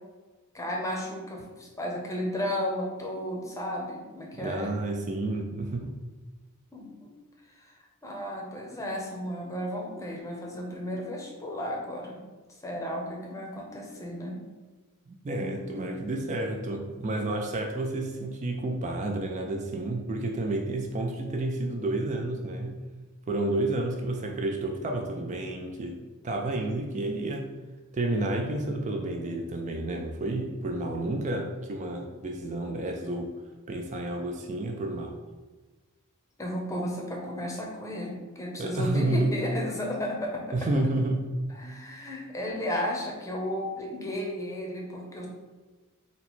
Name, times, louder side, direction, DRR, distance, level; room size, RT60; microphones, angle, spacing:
voice 1, 0.5-4.7 6.7-7.1 7.5-12.2 12.6-14.4 36.4-40.4 41.5-45.3, left 1 dB, 15° left, -1 dB, 0.7 m, -33 dB
voice 2, 4.4-6.0 15.1-22.8 23.3-26.0 26.2-27.5 27.9-33.3 33.7-35.2 38.6-39.3 40.5-41.3, right 2 dB, 35° right, 2 dB, 0.4 m, -30 dB
4.0 x 2.1 x 4.3 m, 1.3 s
head